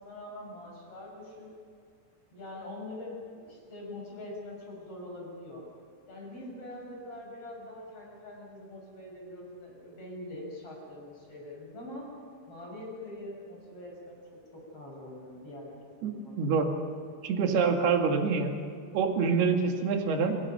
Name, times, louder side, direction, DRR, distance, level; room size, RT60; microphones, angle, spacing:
voice 1, 0.0-1.5 2.3-3.2 3.4-5.6 6.1-12.1 12.5-14.2 14.5-16.3, left 1 dB, 35° left, -1 dB, 7.4 m, -43 dB
voice 2, 16.0-16.7 17.2-18.5 18.9-20.4, right 5 dB, 85° right, 3 dB, 4.0 m, -26 dB
26.5 x 25.5 x 5.9 m, 2.3 s
omnidirectional pair, 4.5 m